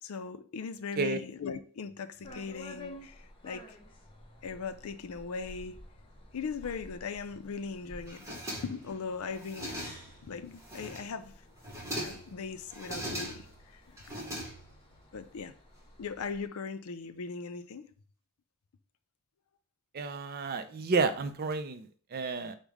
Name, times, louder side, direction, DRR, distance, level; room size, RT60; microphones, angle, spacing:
voice 1, 0.0-3.8 4.4-5.8 6.3-9.9 10.2-11.4 11.9-13.5 13.7-14.2 15.1-15.5 16.0-17.9, left 5 dB, 80° left, 0.5 m, -39 dB
sound 1, 2.2-16.5, left 1 dB, 25° left, 0.8 m, -52 dB
sound 2, 8.1-8.9 9.3-10.2 10.6-11.2 11.6-12.3 12.7-13.6 14.0-14.9, equal, 15° right, 1.0 m, -40 dB
voice 2, 19.9-22.6, right 4 dB, 45° right, 0.4 m, -31 dB
5.3 x 2.1 x 4.7 m
head